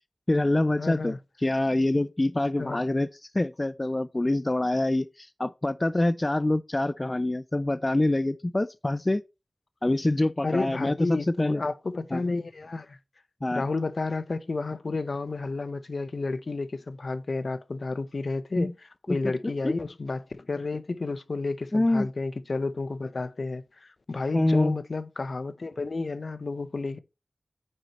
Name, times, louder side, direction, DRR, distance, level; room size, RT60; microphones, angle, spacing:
voice 1, 0.3-1.1 1.4-3.1 3.3-9.2 9.8-11.6 12.1-12.2 13.4-13.6 18.6-18.7 19.1-19.2 19.6-19.8 21.7-22.1 24.3-24.8, left 1 dB, 30° left, 0.3 m, -25 dB
voice 2, 0.8-1.2 2.6-2.8 10.4-13.0 13.5-18.7 19.1-27.0, left 3 dB, 70° left, 0.6 m, -31 dB
9.0 x 6.2 x 2.9 m
wide cardioid pair, 55°, 0 cm